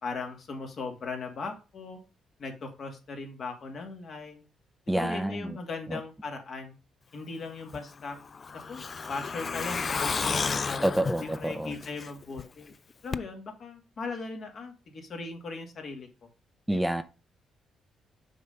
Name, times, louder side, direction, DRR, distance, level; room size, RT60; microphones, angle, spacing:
voice 1, 0.0-2.0 2.4-4.4 5.0-6.7 7.1-8.2 8.5-8.8 9.1-12.7 13.0-16.3 16.7-16.8, left 4 dB, 55° left, 2.3 m, -38 dB
voice 2, 4.9-5.6 5.9-6.0 10.8-11.7 16.7-17.0, right 1 dB, 5° right, 0.6 m, -28 dB
Truck, 7.7-12.4 12.7-12.8 13.1-13.2, left 5 dB, 40° left, 0.4 m, -32 dB
6.6 x 4.4 x 5.3 m
cardioid pair, 75°, 0 cm